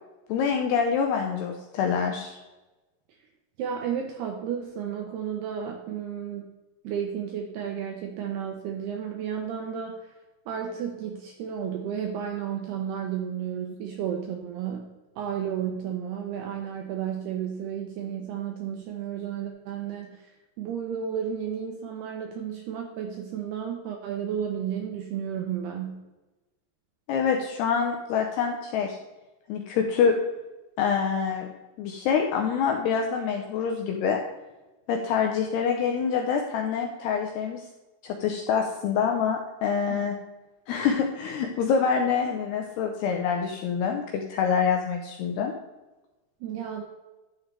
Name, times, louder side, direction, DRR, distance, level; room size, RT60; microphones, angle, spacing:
voice 1, 0.3-2.4 27.1-29.0 29.5-30.1 30.8-31.5 31.8-34.2 34.9-37.6 38.0-40.2 40.7-45.5, left 6 dB, 85° left, 2 dB, 2.4 m, -26 dB
voice 2, 3.6-6.5 6.8-10.1 10.5-14.9 15.2-26.0 39.9-40.0 46.4-46.8, right 8 dB, 80° right, 2 dB, 2.4 m, -32 dB
11.0 x 7.2 x 3.3 m, 1.1 s
omnidirectional pair, 5.6 m